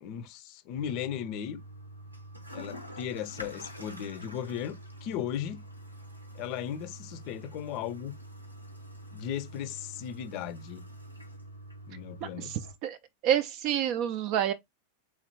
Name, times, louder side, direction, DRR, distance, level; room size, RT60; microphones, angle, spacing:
voice 1, 0.0-1.6 2.5-5.6 6.3-8.1 9.1-10.8 11.9-12.5, left 10 dB, 45° left, 0.6 m, -36 dB
Toilet flush, 0.7-12.7, equal, 90° right, 0.8 m, -46 dB
voice 2, 12.2-13.0 13.2-14.5, right 10 dB, 40° right, 0.4 m, -28 dB
3.7 x 3.1 x 3.0 m
figure-of-eight pair, 90°, 0 cm